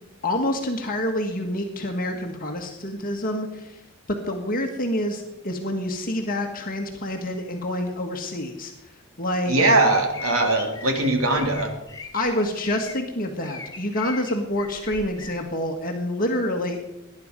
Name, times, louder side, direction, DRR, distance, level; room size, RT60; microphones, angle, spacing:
voice 1, 0.2-3.8 4.1-9.6 12.1-16.8, left 1 dB, 40° left, 2 dB, 1.6 m, -27 dB
voice 2, 9.5-11.7, right 2 dB, 75° right, 3 dB, 2.9 m, -20 dB
sound 1, 9.8-13.0 13.4-15.4, left 4 dB, 15° left, 1.9 m, -39 dB
19.0 x 11.0 x 5.2 m, 0.90 s
head